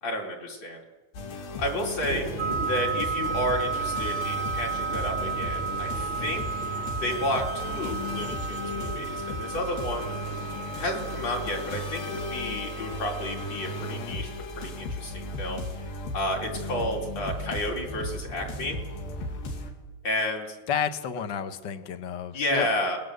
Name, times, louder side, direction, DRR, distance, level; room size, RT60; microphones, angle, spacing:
voice 1, 0.0-0.8 1.6-2.3 2.6-6.4 7.0-10.1 10.8-14.3 14.6-15.7 16.1-18.8 20.0-20.6 22.3-23.0, left 1 dB, 45° left, -1 dB, 5.1 m, -31 dB
sound 1, 1.1-19.7, left 1 dB, 85° left, 4.4 m, -35 dB
Thunder, 2.1-11.1, right 3 dB, 85° right, 0.5 m, -41 dB
sound 2, 2.4-13.9, right 6 dB, 65° right, 1.6 m, -34 dB
voice 2, 20.7-22.7, left 8 dB, 65° left, 9 dB, 1.0 m, -31 dB
30.0 x 20.0 x 7.9 m, 1.1 s
omnidirectional pair, 4.0 m